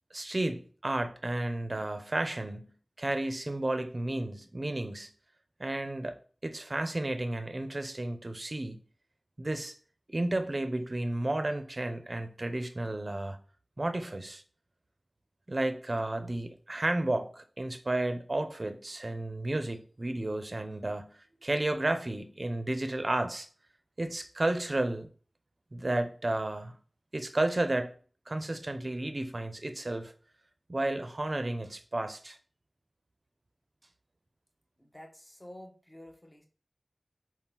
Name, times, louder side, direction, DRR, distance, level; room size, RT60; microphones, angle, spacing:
voice 1, 0.1-5.1 5.6-8.8 9.4-9.7 10.1-13.4 13.8-14.4 15.5-23.5 24.0-25.1 25.7-26.8 27.1-27.9 28.3-30.1 30.7-32.4, right 2 dB, 45° right, 0.5 m, -32 dB
voice 2, 34.8-36.5, left 1 dB, 20° left, 0.9 m, -50 dB
4.5 x 3.6 x 2.9 m
wide cardioid pair, 60°, 0 cm